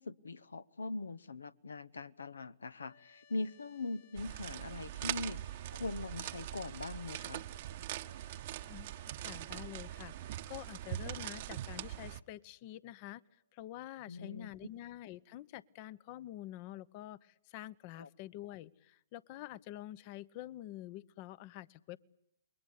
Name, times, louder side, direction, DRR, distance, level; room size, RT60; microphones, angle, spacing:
voice 1, 0.0-5.4 5.7-7.4 14.1-14.5 18.0-18.1, left 3 dB, 75° left, 19 dB, 1.0 m, -41 dB
sound 1, 2.8-13.9, left 5 dB, 60° left, 6.6 m, -66 dB
sound 2, 4.2-12.2, right 13 dB, 45° right, 1.0 m, -42 dB
voice 2, 8.7-13.2 13.5-22.0, left 14 dB, 40° left, 21 dB, 1.0 m, -47 dB
28.5 x 22.5 x 8.3 m, 0.76 s
figure-of-eight pair, 120°, 0 cm